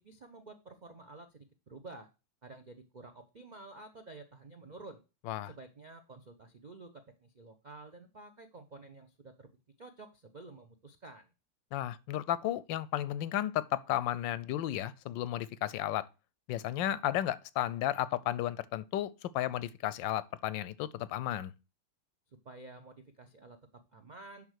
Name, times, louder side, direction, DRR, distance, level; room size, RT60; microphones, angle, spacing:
voice 1, 0.0-2.1 2.4-5.0 5.4-11.3 22.4-24.5, right 3 dB, 70° right, 0.4 m, -51 dB
voice 2, 11.7-16.1 16.5-21.5, left 12 dB, 90° left, 1.3 m, -33 dB
11.0 x 3.7 x 6.4 m
omnidirectional pair, 2.0 m